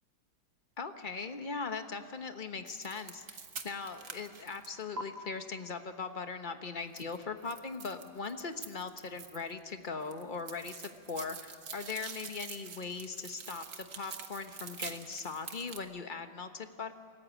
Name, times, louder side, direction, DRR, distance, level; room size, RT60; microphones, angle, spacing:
voice 1, 0.8-3.4 3.6-16.9, left 4 dB, 30° left, 7 dB, 1.0 m, -40 dB
sound 1, 2.7-5.0 7.0-9.6 9.9-15.8, right 5 dB, 45° right, 1.5 m, -46 dB
25.5 x 14.5 x 9.9 m, 2.2 s
omnidirectional pair, 2.1 m